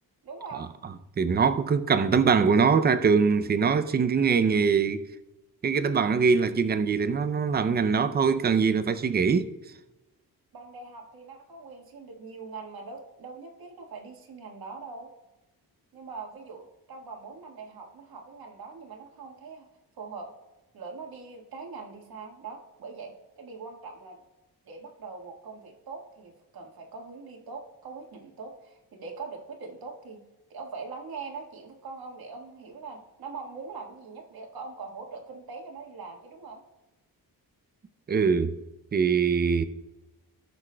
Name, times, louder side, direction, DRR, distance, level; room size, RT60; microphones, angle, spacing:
voice 1, 0.2-0.7 10.5-15.1 15.9-19.7 20.0-20.3 20.7-24.2 24.6-30.2 30.5-36.6, right 4 dB, 70° right, 1.6 m, -42 dB
voice 2, 1.2-5.0 5.6-9.5 38.1-38.5 38.9-39.6, right 5 dB, 25° right, 0.4 m, -23 dB
18.0 x 6.1 x 2.2 m
wide cardioid pair, 150°, 38 cm